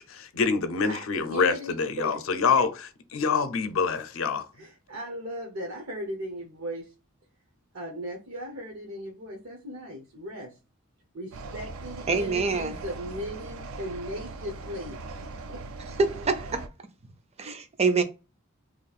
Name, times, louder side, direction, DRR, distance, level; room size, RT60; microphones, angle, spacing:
voice 1, 0.0-4.4, left 5 dB, 75° left, 0.6 m, -26 dB
voice 2, 0.9-2.3 4.5-6.9 7.7-10.5 11.1-15.6, equal, 70° right, 0.8 m, -38 dB
sound 1, 11.3-16.7, right 3 dB, 90° right, 0.4 m, -40 dB
voice 3, 12.1-12.7 16.0-16.7 17.4-18.0, right 4 dB, 30° right, 0.5 m, -25 dB
3.0 x 2.4 x 4.0 m
head